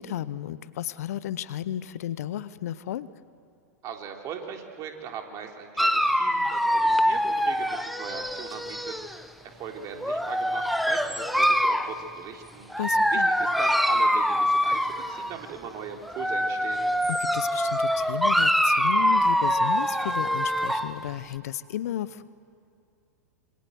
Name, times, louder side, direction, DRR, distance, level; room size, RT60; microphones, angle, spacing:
voice 1, 0.0-3.1 12.8-13.3 17.1-22.2, left 11 dB, 65° left, 17 dB, 0.9 m, -33 dB
voice 2, 3.8-16.9, right 7 dB, 40° right, 2 dB, 3.6 m, -40 dB
Dog, 5.8-9.2 10.0-11.9 12.7-15.3 16.0-20.9, equal, ahead, 1.2 m, -24 dB
27.0 x 25.0 x 7.9 m, 2.5 s
hypercardioid pair, 100°, 9 cm